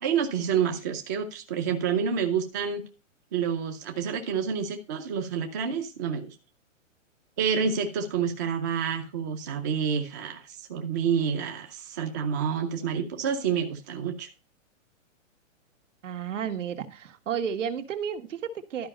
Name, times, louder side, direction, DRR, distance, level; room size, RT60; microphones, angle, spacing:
voice 1, 0.0-2.8 3.3-6.3 7.4-14.3, right 7 dB, 15° right, 4 dB, 0.5 m, -28 dB
voice 2, 16.0-18.9, right 8 dB, 65° right, 7 dB, 1.7 m, -32 dB
12.5 x 5.1 x 5.3 m, 0.30 s
hypercardioid pair, 170°, 39 cm